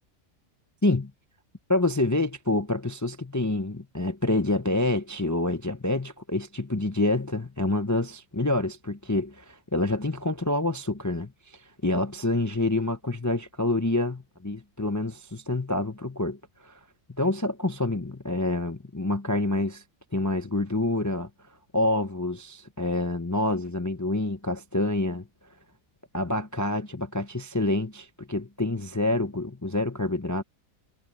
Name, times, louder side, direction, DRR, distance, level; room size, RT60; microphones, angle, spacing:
voice 1, 1.7-16.4 16.6-16.8 17.1-19.8 20.1-21.3 21.7-25.3 26.1-30.4, left 2 dB, 20° left, 0.6 m, -27 dB
omnidirectional pair, 1.5 m